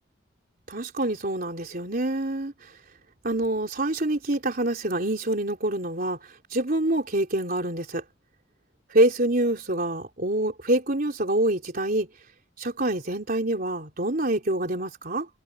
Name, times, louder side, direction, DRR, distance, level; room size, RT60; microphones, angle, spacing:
voice 1, 0.7-2.7 3.2-8.0 8.9-12.1 12.6-15.3, right 1 dB, 50° right, 3.8 m, -26 dB
head